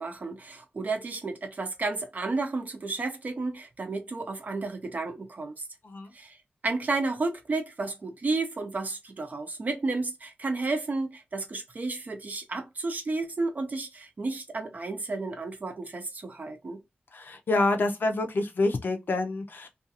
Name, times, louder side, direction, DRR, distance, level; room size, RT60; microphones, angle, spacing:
voice 1, 0.0-5.7 6.1-6.4 6.6-16.8, right 3 dB, 45° right, 0.6 m, -32 dB
voice 2, 17.1-19.7, left 2 dB, 60° left, 0.5 m, -27 dB
2.4 x 2.4 x 2.8 m
wide cardioid pair, 110°, 4 cm